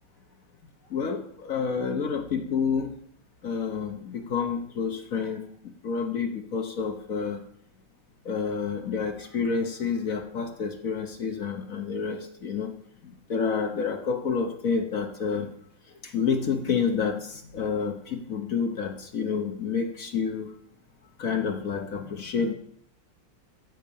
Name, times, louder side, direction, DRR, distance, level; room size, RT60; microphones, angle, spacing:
voice 1, 0.9-2.9 3.4-7.4 8.2-12.7 13.0-15.5 16.0-20.5 21.2-22.5, left 6 dB, 50° left, 5 dB, 1.3 m, -29 dB
15.0 x 5.1 x 7.0 m, 0.67 s
omnidirectional pair, 2.1 m